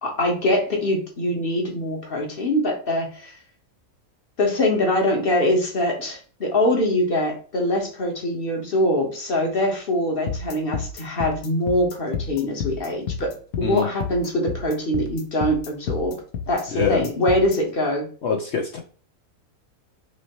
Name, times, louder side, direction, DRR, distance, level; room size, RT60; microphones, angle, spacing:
voice 1, 0.0-3.4 4.4-16.2 16.5-18.1, left 1 dB, 45° left, 1 dB, 1.4 m, -23 dB
sound 1, 10.3-17.6, left 6 dB, 85° left, 1.2 m, -30 dB
voice 2, 16.7-17.1 18.2-18.8, left 5 dB, 60° left, 3 dB, 0.8 m, -24 dB
6.1 x 2.8 x 3.0 m, 0.42 s
omnidirectional pair, 1.5 m